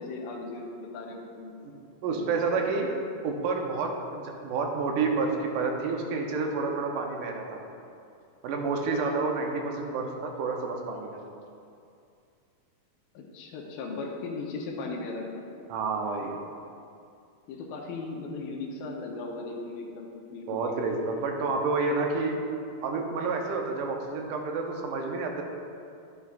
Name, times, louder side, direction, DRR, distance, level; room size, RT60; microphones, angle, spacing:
voice 1, 0.0-1.5 2.1-2.7 13.1-15.4 17.5-20.8, left 3 dB, 85° left, 0 dB, 2.5 m, -37 dB
voice 2, 1.6-2.9 3.2-7.6 8.4-11.2 15.7-16.4 20.5-22.4 22.8-25.4, right 4 dB, 75° right, 2 dB, 2.1 m, -29 dB
10.5 x 7.4 x 2.4 m, 2.5 s
omnidirectional pair, 4.0 m